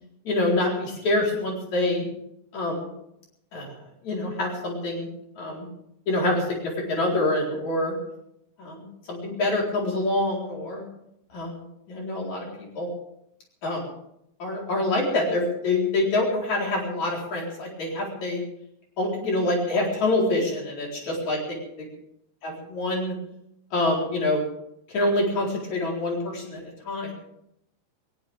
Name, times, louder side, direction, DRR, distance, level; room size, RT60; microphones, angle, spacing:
voice 1, 0.3-2.0 2.5-2.9 3.5-3.7 4.0-5.1 5.4-5.7 6.1-7.9 8.6-10.9 11.3-11.6 11.9-12.9 13.6-13.8 14.4-18.4 19.0-21.6 22.4-23.1 23.7-24.4 24.9-27.1, left 2 dB, 65° left, -2 dB, 5.6 m, -26 dB
20.0 x 20.0 x 3.6 m, 0.77 s
omnidirectional pair, 3.5 m